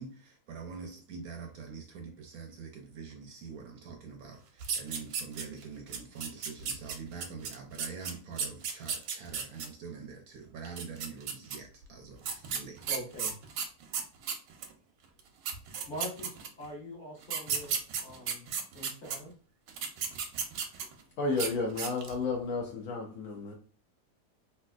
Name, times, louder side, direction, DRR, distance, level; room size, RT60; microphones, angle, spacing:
voice 1, 0.0-12.8, right 5 dB, 70° right, 0.9 m, -45 dB
sound 1, 4.6-5.6 5.9-9.7 10.6-11.6 12.2-14.7 15.2-15.3 15.4-16.7 17.2-19.2 19.7-21.0 21.3-21.5 21.8-22.2, right 6 dB, 90° right, 1.3 m, -34 dB
voice 2, 12.9-13.3 15.8-18.5 18.7-19.3, equal, 30° left, 1.0 m, -43 dB
voice 3, 21.2-23.5, left 3 dB, 65° left, 0.9 m, -32 dB
3.2 x 2.8 x 2.3 m
omnidirectional pair, 1.8 m